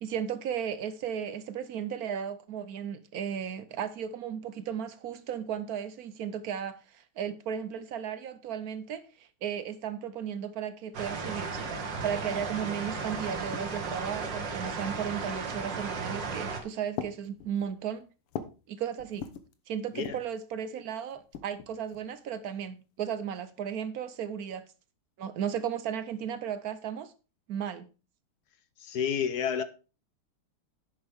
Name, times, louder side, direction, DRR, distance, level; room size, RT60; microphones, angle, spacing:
voice 1, 0.0-18.1 18.7-19.3 19.7-24.6 25.2-27.1 27.5-27.9, right 8 dB, 75° right, 0.8 m, -35 dB
sound 1, 10.9-16.6, right 4 dB, 60° right, 2.1 m, -35 dB
sound 2, 12.5-12.6 12.8-14.0 14.8-15.3 16.1-16.5 16.9-18.7 19.0-19.5 19.9-20.4 21.1-22.1, left 8 dB, 85° left, 1.9 m, -42 dB
voice 2, 28.8-29.6, left 7 dB, 60° left, 1.1 m, -30 dB
10.5 x 8.6 x 3.5 m
omnidirectional pair, 2.4 m